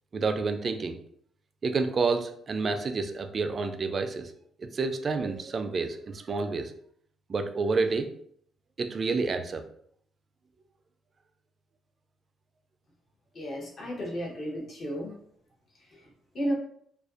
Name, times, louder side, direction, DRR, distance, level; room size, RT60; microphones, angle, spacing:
voice 1, 0.1-1.0 1.6-4.3 4.6-6.7 7.3-8.1 8.8-9.6, right 4 dB, 40° right, 7 dB, 0.3 m, -29 dB
voice 2, 13.3-15.1 16.3-16.5, equal, 50° left, -2 dB, 0.8 m, -33 dB
2.4 x 2.2 x 2.4 m, 0.66 s
cardioid pair, 90°, 0 cm